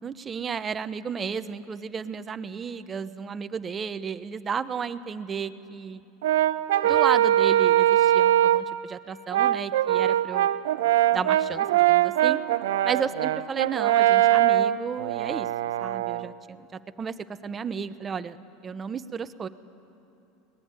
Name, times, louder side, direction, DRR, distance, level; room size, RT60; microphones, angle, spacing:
voice 1, 0.0-6.0 6.8-10.5 11.1-12.4 12.8-15.5 15.8-17.1 17.4-18.4 18.6-19.5, right 6 dB, 25° right, 12 dB, 0.8 m, -33 dB
Brass instrument, 6.2-8.7 9.3-16.3, right 13 dB, 90° right, 0.6 m, -22 dB
25.0 x 20.0 x 9.7 m, 2.9 s
supercardioid pair, 125°, 0 cm